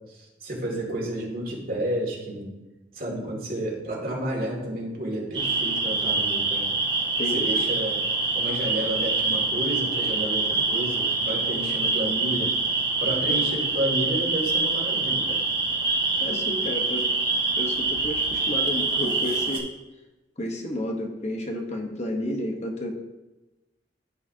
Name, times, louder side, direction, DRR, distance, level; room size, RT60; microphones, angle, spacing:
voice 1, 0.1-2.5 2.9-6.7 7.3-8.0 8.3-12.5 13.0-15.4, right 1 dB, 55° right, -2 dB, 2.3 m, -31 dB
sound 1, 5.3-19.6, right 3 dB, 30° right, 1.6 m, -25 dB
voice 2, 7.2-7.5 13.3-13.4 16.2-17.1 17.6-19.7 20.4-22.9, left 1 dB, 40° left, 2 dB, 1.1 m, -31 dB
14.5 x 5.0 x 2.8 m, 1.1 s
head